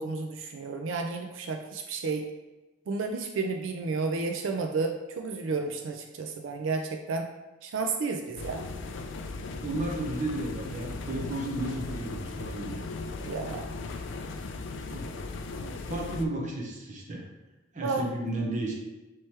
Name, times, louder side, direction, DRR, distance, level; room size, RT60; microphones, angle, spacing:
voice 1, 0.0-2.2 2.9-7.3 7.6-8.6 13.2-13.7 17.8-18.1, right 4 dB, 85° right, 4 dB, 0.4 m, -31 dB
sound 1, 8.4-16.3, left 3 dB, 75° left, 0.4 m, -37 dB
voice 2, 9.6-12.8 14.9-15.2 15.6-17.2 17.7-18.7, right 2 dB, 40° right, -1 dB, 0.8 m, -33 dB
3.2 x 3.0 x 4.5 m, 1.1 s
head